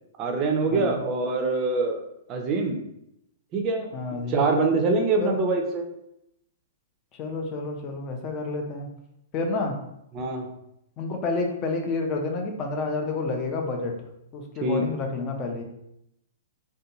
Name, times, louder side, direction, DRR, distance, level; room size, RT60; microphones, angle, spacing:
voice 1, 0.2-2.8 3.5-3.9 4.3-5.9 10.1-10.5 14.6-14.8, right 3 dB, 30° right, 3 dB, 0.4 m, -24 dB
voice 2, 3.9-4.4 5.2-5.4 7.2-8.9 9.3-9.7 11.0-13.9 14.3-15.6, left 3 dB, 30° left, 2 dB, 0.5 m, -29 dB
2.5 x 2.2 x 2.8 m, 0.80 s
figure-of-eight pair, 110°, 0 cm